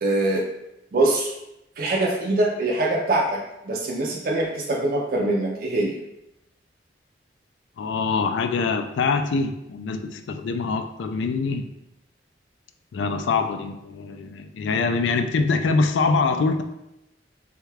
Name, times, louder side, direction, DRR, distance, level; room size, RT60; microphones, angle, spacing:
voice 1, 0.0-0.5 0.9-1.3 1.8-6.0, right 2 dB, 50° right, -2 dB, 0.4 m, -23 dB
voice 2, 7.8-11.6 12.9-16.6, left 4 dB, 85° left, 7 dB, 0.3 m, -24 dB
3.5 x 2.3 x 3.2 m, 0.87 s
head